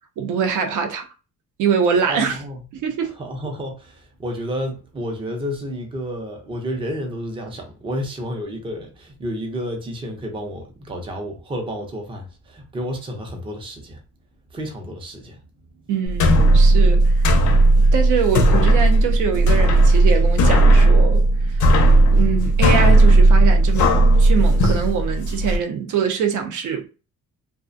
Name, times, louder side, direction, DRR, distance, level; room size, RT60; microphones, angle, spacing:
voice 1, 0.2-1.1 1.6-2.4 2.7-3.1 15.9-17.3 17.9-21.6 22.1-26.9, right 6 dB, 75° right, 0.5 m, -24 dB
voice 2, 2.1-2.6 3.0-14.0 14.5-15.4, equal, 15° right, 0.4 m, -31 dB
sound 1, 16.1-25.6, right 1 dB, 65° left, 0.5 m, -15 dB
2.4 x 2.0 x 2.5 m
cardioid pair, 145°, 31 cm